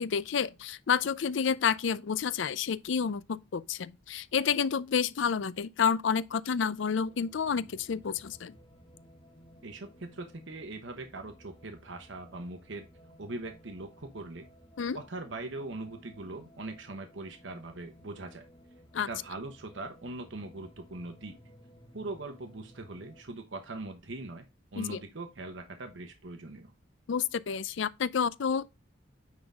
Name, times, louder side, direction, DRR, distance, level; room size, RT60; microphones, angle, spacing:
voice 1, 0.0-8.6 14.8-15.0 18.9-19.1 24.8-25.0 27.1-28.7, left 6 dB, 75° left, 0.4 m, -29 dB
confused voices, 7.0-23.2, equal, 25° left, 1.4 m, -57 dB
voice 2, 9.6-12.9 13.2-14.5 14.9-18.4 19.0-21.4 21.9-24.4 24.7-26.7, right 2 dB, 75° right, 1.1 m, -41 dB
9.6 x 3.9 x 3.5 m
head